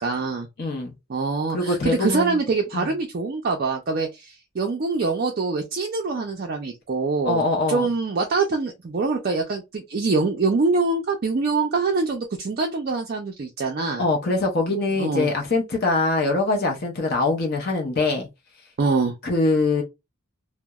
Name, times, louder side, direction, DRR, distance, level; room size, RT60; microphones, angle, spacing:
voice 1, 0.0-0.5 1.1-7.4 7.7-14.0 15.0-15.3 18.8-19.2, right 3 dB, 45° right, 0.4 m, -24 dB
voice 2, 0.6-0.9 1.5-2.4 2.7-2.9 7.2-7.9 14.0-18.3 19.2-19.8, left 3 dB, 45° left, 0.6 m, -23 dB
2.8 x 2.0 x 2.2 m
head